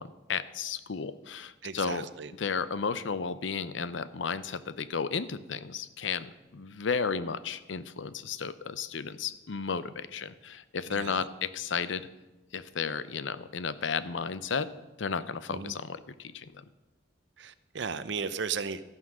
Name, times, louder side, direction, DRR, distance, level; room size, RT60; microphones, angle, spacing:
voice 1, 0.0-2.1 2.4-12.1 12.5-14.7 15.0-16.6, left 5 dB, 75° left, 14 dB, 0.7 m, -33 dB
voice 2, 1.6-2.3 10.9-11.2 15.5-15.8 17.4-18.8, right 5 dB, 65° right, 13 dB, 0.7 m, -35 dB
13.5 x 9.6 x 6.2 m, 1.1 s
head